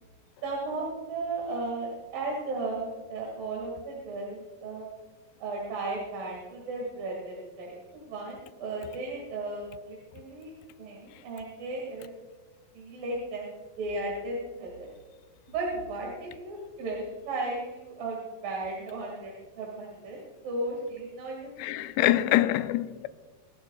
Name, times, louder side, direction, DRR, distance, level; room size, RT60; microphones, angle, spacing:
voice 1, 0.4-4.9 5.4-10.5 10.8-12.1 12.7-13.5 13.8-14.9 15.5-22.1, right 2 dB, 60° right, 3.6 m, -35 dB
voice 2, 21.6-23.1, left 15 dB, 90° left, 2.7 m, -25 dB
26.0 x 11.0 x 2.4 m
omnidirectional pair, 4.7 m